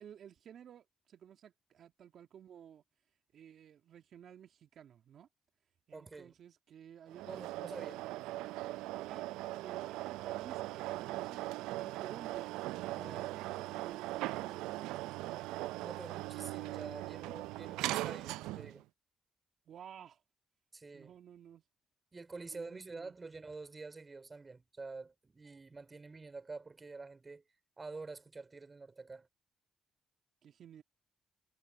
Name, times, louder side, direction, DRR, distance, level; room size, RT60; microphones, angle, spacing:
voice 1, 0.0-2.8 3.3-5.3 5.9-8.6 8.9-9.3 9.6-12.5 13.0-15.5 19.7-20.2 20.9-21.6 22.5-23.1 30.4-30.8, right 9 dB, 65° right, 2.3 m, -54 dB
voice 2, 5.9-6.4 7.2-8.0 12.9-13.3 15.8-18.8 20.7-21.1 22.1-27.4 27.8-29.3, right 3 dB, 35° right, 3.3 m, -48 dB
sound 1, 7.1-18.8, right 18 dB, 85° right, 0.4 m, -40 dB
hypercardioid pair, 45°, 0 cm